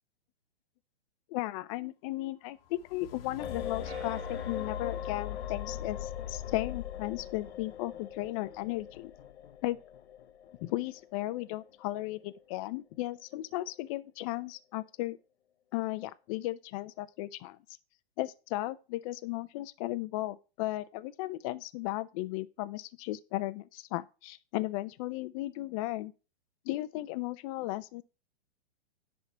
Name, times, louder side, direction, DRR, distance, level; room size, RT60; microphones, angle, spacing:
voice 1, 1.3-9.1 9.6-9.8 10.6-15.2 15.7-17.6 18.2-26.1 26.6-28.0, left 17 dB, 35° left, 0.6 m, -35 dB
sound 1, 2.6-10.7 11.2-11.3, left 9 dB, 65° left, 1.2 m, -42 dB
sound 2, 3.4-13.3 13.6-13.8, left 9 dB, 85° left, 0.9 m, -44 dB
sound 3, 3.8-6.6, right 2 dB, 55° right, 2.6 m, -52 dB
10.5 x 3.8 x 7.1 m
hypercardioid pair, 135°, 32 cm